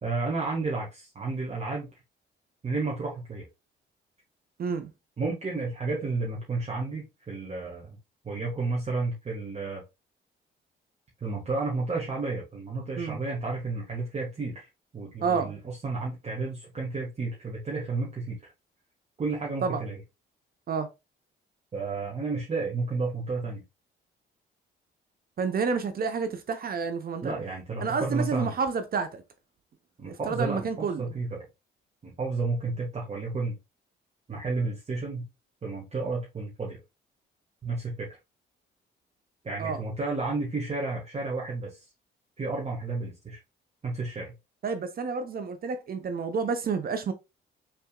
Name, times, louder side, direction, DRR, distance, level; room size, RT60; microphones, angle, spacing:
voice 1, 0.0-1.9 2.6-3.4 5.2-8.0 8.2-9.8 11.2-14.7 14.9-18.5 19.2-20.0 21.7-23.6 27.2-28.5 30.0-31.4 32.0-33.5 34.3-35.3 35.6-36.8 37.6-38.1 39.4-41.8 42.4-43.4 43.8-44.3, right 3 dB, 35° right, 1.5 m, -31 dB
voice 2, 4.6-4.9 13.0-13.2 15.2-15.5 19.6-19.8 20.7-20.9 25.4-27.3 27.8-29.2 30.0-31.1 39.6-39.8 44.6-47.1, right 5 dB, 50° right, 0.8 m, -29 dB
5.9 x 3.4 x 2.2 m
cardioid pair, 90°, 20 cm